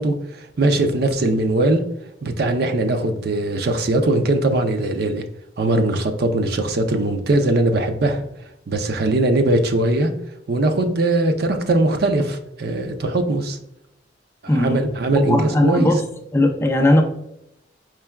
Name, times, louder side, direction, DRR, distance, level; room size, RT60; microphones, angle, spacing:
voice 1, 0.0-1.8 2.2-5.2 5.6-8.3 8.7-10.1 10.5-13.6 14.6-15.9, right 2 dB, 60° right, 0.5 m, -20 dB
voice 2, 14.5-16.0 16.3-17.0, left 1 dB, 15° left, 0.4 m, -18 dB
4.5 x 3.3 x 2.2 m
head